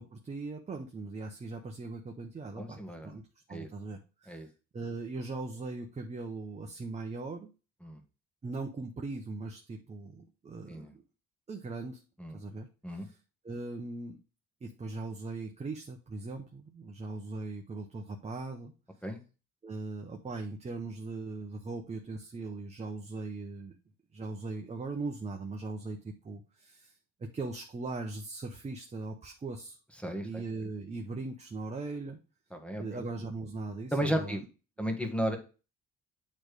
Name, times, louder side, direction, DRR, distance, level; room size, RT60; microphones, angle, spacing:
voice 1, 0.0-4.4 4.7-7.5 8.4-11.0 11.5-12.0 12.3-13.2 13.4-14.2 14.6-18.7 19.6-23.7 24.1-29.8 30.2-32.2 32.8-34.4, right 3 dB, 20° right, 3 dB, 0.7 m, -40 dB
voice 2, 2.6-3.2 3.5-3.7 4.3-4.5 7.8-8.0 10.7-10.9 12.2-12.4 12.8-13.1 19.0-19.2 30.0-30.3 32.6-33.0 33.9-34.4 34.8-35.4, equal, 5° left, 4 dB, 1.3 m, -33 dB
8.7 x 3.2 x 4.9 m, 0.33 s
cardioid pair, 155°, 33 cm